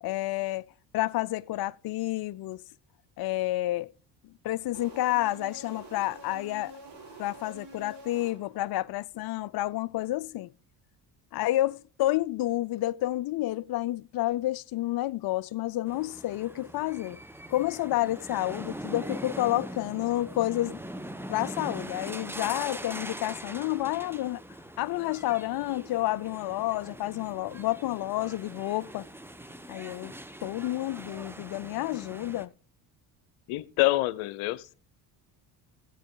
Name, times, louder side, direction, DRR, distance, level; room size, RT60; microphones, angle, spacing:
voice 1, 0.0-0.6 0.9-2.6 3.2-3.9 4.4-6.7 7.2-10.5 11.3-17.2 17.5-20.8 21.3-24.4 24.8-29.1 29.7-30.1 30.4-32.5, left 16 dB, 50° left, 0.5 m, -30 dB
sound 1, 4.7-8.8, right 1 dB, 70° right, 7.7 m, -47 dB
sound 2, 15.9-32.5, right 1 dB, 5° right, 1.0 m, -42 dB
voice 2, 33.5-34.7, left 19 dB, 75° left, 0.9 m, -26 dB
16.0 x 8.0 x 3.8 m
supercardioid pair, 70°, 49 cm